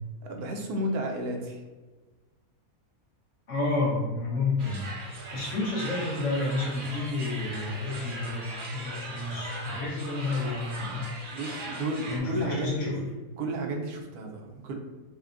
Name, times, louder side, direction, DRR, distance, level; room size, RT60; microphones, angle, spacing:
voice 1, 0.2-1.6 11.3-13.0 13.4-14.7, right 1 dB, 80° right, 2 dB, 1.2 m, -32 dB
voice 2, 3.5-4.9 5.3-11.1 12.1-13.0, left 3 dB, 55° left, -5 dB, 1.3 m, -30 dB
sound 1, 4.6-12.2, right 2 dB, 45° right, 0.7 m, -39 dB
5.6 x 2.2 x 2.5 m, 1.2 s
omnidirectional pair, 1.6 m